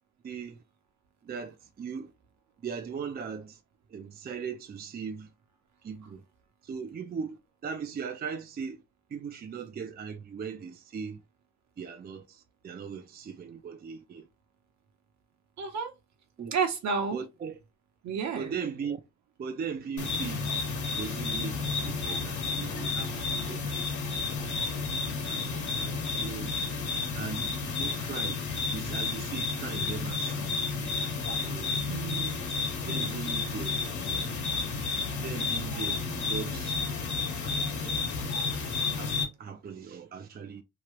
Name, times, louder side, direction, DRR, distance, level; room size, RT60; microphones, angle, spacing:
voice 1, 0.2-0.6 1.3-2.1 2.6-3.6 3.9-5.3 5.8-6.2 6.7-7.4 7.6-8.8 9.1-11.2 11.8-14.3 16.4-16.5 17.1-17.6 18.4-19.0 19.4-20.5 21.0-23.9 25.3-26.6 27.1-28.4 28.7-30.5 31.4-31.8 32.9-34.3 35.2-36.0 36.3-36.7 37.4-38.0 39.0-40.6, right 6 dB, 30° right, 0.5 m, -39 dB
voice 2, 15.6-15.9 16.5-17.2 18.0-18.6 31.8-32.5 32.8-33.2 36.0-36.2, right 5 dB, 65° right, 1.0 m, -32 dB
sound 1, 20.0-39.2, left 4 dB, 70° left, 1.2 m, -31 dB
3.0 x 2.4 x 3.0 m
cardioid pair, 90°, 30 cm